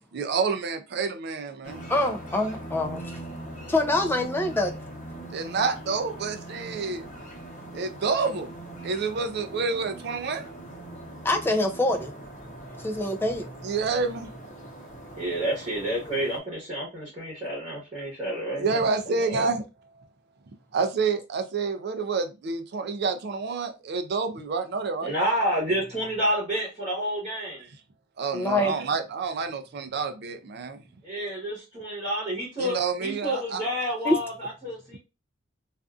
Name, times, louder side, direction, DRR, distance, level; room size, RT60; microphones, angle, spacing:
voice 1, 0.1-1.8 5.3-7.1 7.7-8.5 8.8-10.4 13.6-14.3 18.6-19.6 20.0-20.1 20.7-25.1 27.6-27.7 28.2-30.8 32.6-33.6, right 4 dB, 55° right, 0.4 m, -28 dB
sound 1, 1.6-16.4, right 1 dB, 40° left, 0.8 m, -41 dB
voice 2, 1.9-3.1 3.7-4.7 11.2-12.1 12.8-13.5 28.3-28.7 34.0-34.2, left 1 dB, 10° left, 0.4 m, -25 dB
voice 3, 15.2-18.8 19.3-19.4 25.0-27.6 31.0-35.0, equal, 30° right, 1.0 m, -29 dB
2.5 x 2.4 x 2.3 m
head